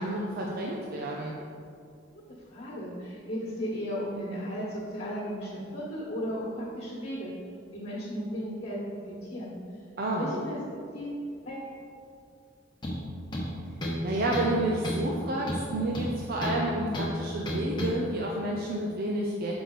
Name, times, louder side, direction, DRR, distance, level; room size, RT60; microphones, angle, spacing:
voice 1, 0.0-1.3 10.0-10.3 14.0-19.5, right 1 dB, 50° right, -2 dB, 0.6 m, -30 dB
voice 2, 2.5-7.3 7.7-8.8 9.1-9.5 10.2-10.6 10.9-11.7, equal, 45° left, -6 dB, 1.5 m, -35 dB
sound 1, 12.8-13.0 13.3-14.0 14.3-14.6 14.8-15.1 15.5-16.6 16.9-17.1 17.5-17.9, equal, 25° left, 1.1 m, -31 dB
6.7 x 4.8 x 3.8 m, 2.3 s
head